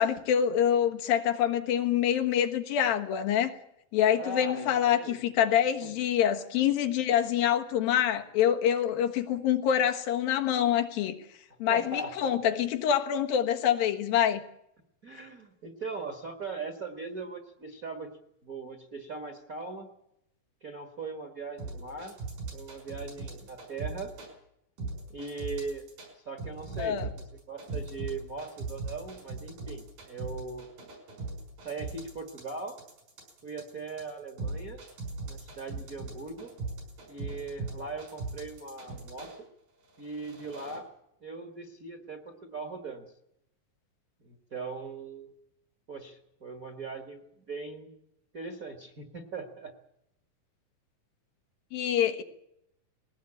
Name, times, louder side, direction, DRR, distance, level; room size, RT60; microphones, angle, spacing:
voice 1, 0.0-3.5 3.9-11.2 11.6-14.4 26.8-27.1 51.7-52.2, left 9 dB, 90° left, 3.2 m, -26 dB
voice 2, 4.2-5.2 5.8-5.9 11.7-12.4 15.0-18.2 18.4-19.9 20.6-22.2 22.5-24.1 25.1-25.8 26.2-30.7 31.6-32.8 33.4-34.8 35.2-36.5 37.1-39.5 40.0-40.9 41.2-43.1 44.2-45.3 45.9-47.9 48.3-49.7, right 3 dB, 40° right, 1.3 m, -40 dB
sound 1, 21.6-24.3 24.8-26.1 26.4-39.4 39.9-40.8, right 3 dB, 80° right, 7.7 m, -39 dB
20.5 x 18.0 x 8.8 m
omnidirectional pair, 4.0 m